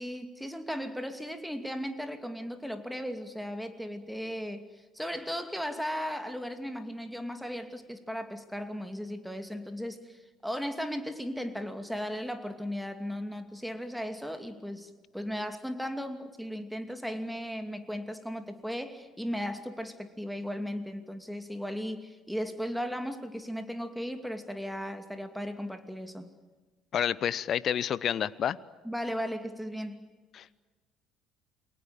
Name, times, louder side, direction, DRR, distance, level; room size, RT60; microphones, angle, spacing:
voice 1, 0.0-4.7 4.9-26.3 28.8-30.1, equal, ahead, 8 dB, 2.6 m, -36 dB
voice 2, 26.9-28.6 30.3-30.6, left 9 dB, 45° left, 21 dB, 0.8 m, -29 dB
29.0 x 22.5 x 7.7 m, 1.3 s
figure-of-eight pair, 55°, 0 cm